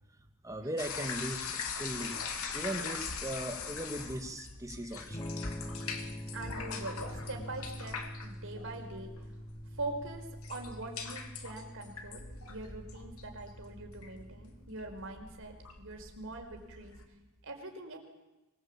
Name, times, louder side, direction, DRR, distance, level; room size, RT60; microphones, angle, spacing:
voice 1, 0.4-1.5 1.8-2.2 2.5-5.3, right 1 dB, 15° right, 5 dB, 2.4 m, -38 dB
sound 1, 0.8-17.0, left 5 dB, 80° left, 2.8 m, -42 dB
Electric guitar / Strum, 5.1-14.9, equal, 20° left, 1.6 m, -45 dB
voice 2, 6.3-9.1 9.8-16.9 17.4-18.0, right 2 dB, 65° right, 3 dB, 5.0 m, -43 dB
24.0 x 20.5 x 8.7 m, 1.1 s
head